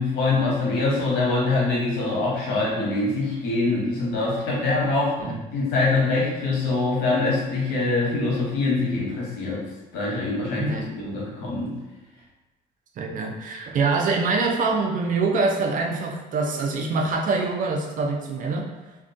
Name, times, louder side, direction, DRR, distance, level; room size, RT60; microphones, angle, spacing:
voice 1, 0.0-5.1 5.5-9.6 9.9-11.8, left 3 dB, 85° left, -4 dB, 0.8 m, -24 dB
voice 2, 10.6-10.9 13.0-18.7, right 3 dB, 50° right, 1 dB, 0.4 m, -24 dB
2.2 x 2.2 x 2.5 m, 1.1 s
cardioid pair, 110°, 17 cm